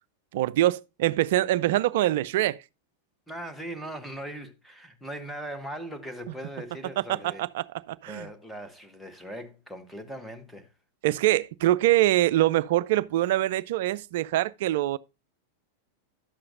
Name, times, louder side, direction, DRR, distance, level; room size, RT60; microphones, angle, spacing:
voice 1, 0.3-2.6 7.1-8.3 11.0-15.0, right 15 dB, 55° right, 0.3 m, -24 dB
voice 2, 3.3-7.4 8.1-10.7, right 1 dB, ahead, 1.3 m, -39 dB
11.5 x 7.6 x 2.5 m
figure-of-eight pair, 90°, 0 cm